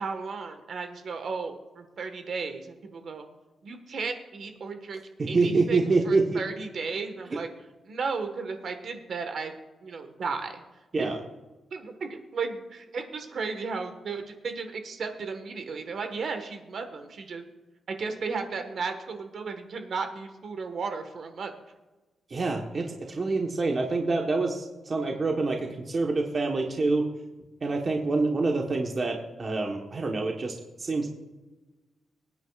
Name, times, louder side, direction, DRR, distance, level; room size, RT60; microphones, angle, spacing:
voice 1, 0.0-3.2 3.6-5.0 5.3-7.5 7.8-9.5 9.8-10.6 11.0-11.1 11.7-17.4 17.9-21.5, right 4 dB, 55° right, 6 dB, 1.4 m, -34 dB
voice 2, 5.2-6.4 7.3-7.4 10.9-11.2 22.3-27.0 27.6-31.1, right 3 dB, 35° right, 1 dB, 1.2 m, -26 dB
24.0 x 9.5 x 2.4 m, 1.1 s
wide cardioid pair, 155°, 0 cm